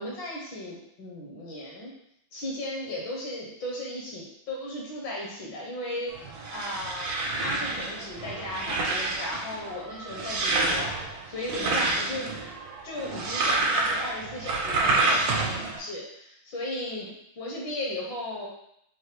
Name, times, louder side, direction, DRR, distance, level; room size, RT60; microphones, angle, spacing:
voice 1, 0.0-1.9 2.3-12.3 12.8-18.5, left 1 dB, 70° left, -3 dB, 1.4 m, -36 dB
sound 1, 6.1-15.8, right 3 dB, 80° right, 1.6 m, -28 dB
4.6 x 2.6 x 3.3 m, 0.75 s
omnidirectional pair, 2.3 m